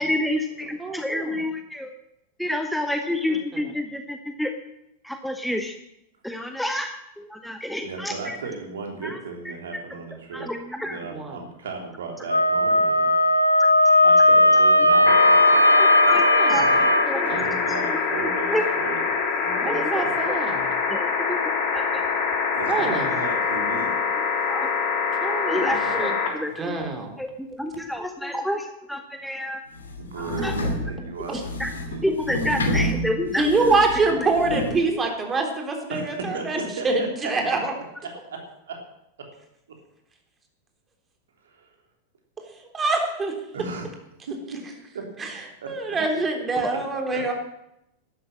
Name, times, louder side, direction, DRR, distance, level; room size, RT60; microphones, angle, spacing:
voice 1, 0.0-1.9 2.4-4.5 5.0-5.7 6.2-8.4 10.3-11.0 15.7-16.7 17.1-17.2 18.1-18.6 19.6-20.0 20.9-21.4 21.7-22.0 24.5-24.7 25.2-26.1 26.3-26.8 27.2-29.6 30.4-30.5 31.6-31.7 32.0-33.5, left 1 dB, ahead, 6 dB, 1.0 m, -29 dB
voice 2, 0.8-1.4 3.0-3.6 11.1-11.4 16.1-16.9 17.1-17.4 19.6-20.6 22.7-23.1 25.2-26.1 26.6-27.1 31.3-31.4 33.4-37.7 42.6-43.3 45.2-45.4 45.7-47.3, right 3 dB, 20° right, 3 dB, 3.6 m, -25 dB
voice 3, 7.8-10.5 10.8-13.1 14.0-15.5 17.2-19.1 19.4-20.2 22.5-23.9 25.6-26.0 30.0-32.1 35.9-36.9 37.2-37.6 38.0-38.8 39.2-39.3 39.7-39.8 41.4-41.7 43.5-43.9 44.3-44.6 44.9-45.0 45.6-45.7 46.7-46.8 47.1-47.2, right 4 dB, 65° right, 2 dB, 3.3 m, -35 dB
Wind instrument woodwind instrument, 12.3-17.1, left 1 dB, 90° left, 1.1 m, -17 dB
sound 1, 15.0-26.3 27.7-27.8, left 5 dB, 40° left, 3.2 m, -25 dB
sound 2, 29.8-34.8, left 1 dB, 70° left, 2.6 m, -29 dB
12.5 x 11.5 x 7.5 m, 0.82 s
figure-of-eight pair, 90°, 0 cm